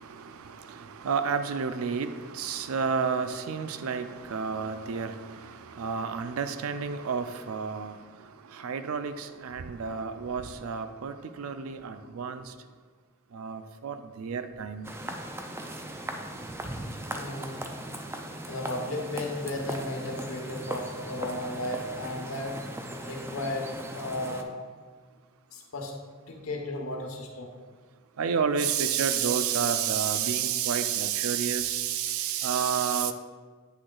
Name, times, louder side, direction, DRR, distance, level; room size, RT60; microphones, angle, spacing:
voice 1, 0.0-8.0 8.5-12.5 13.3-14.9 28.2-33.1, right 7 dB, 85° right, 10 dB, 0.4 m, -30 dB
sound 1, 14.8-24.4, right 1 dB, 10° right, 0.3 m, -38 dB
voice 2, 17.1-17.6 18.5-22.6 23.0-24.5 25.5-25.9 26.3-27.5, left 1 dB, 90° left, 1 dB, 1.0 m, -34 dB
7.9 x 6.2 x 2.3 m, 1.5 s
head